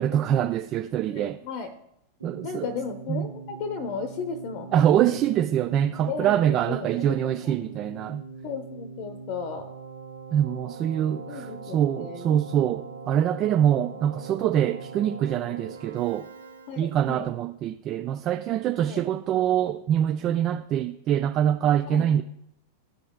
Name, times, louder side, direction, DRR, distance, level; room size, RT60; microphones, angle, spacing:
voice 1, 0.0-1.4 2.2-2.7 3.1-3.3 4.7-8.2 10.3-16.3 16.8-22.2, right 10 dB, 35° right, 0.3 m, -24 dB
voice 2, 1.1-1.7 2.4-5.2 6.0-7.5 8.4-9.7 11.3-12.4 16.7-17.3 18.8-19.0 21.9-22.1, left 5 dB, 45° left, 0.8 m, -35 dB
Keyboard (musical), 2.2-17.2, right 4 dB, 70° right, 0.7 m, -42 dB
14.0 x 5.3 x 2.3 m
figure-of-eight pair, 90°, 0 cm